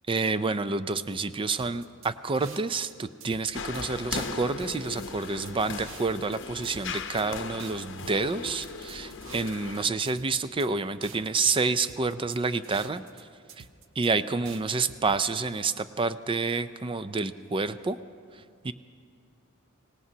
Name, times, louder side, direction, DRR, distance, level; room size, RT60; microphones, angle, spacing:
voice 1, 0.1-13.0 14.0-18.0 18.6-18.7, right 4 dB, 25° right, 13 dB, 0.4 m, -28 dB
sound 1, 1.6-2.9 3.2-3.8 4.2-6.4 6.6-7.3 7.6-9.8 10.1-10.7 11.0-13.2 13.5-14.1 14.5-15.2, right 6 dB, 65° right, 0.7 m, -48 dB
sound 2, 3.5-9.9, left 4 dB, 60° left, 0.7 m, -38 dB
26.0 x 18.0 x 2.8 m, 2.2 s
head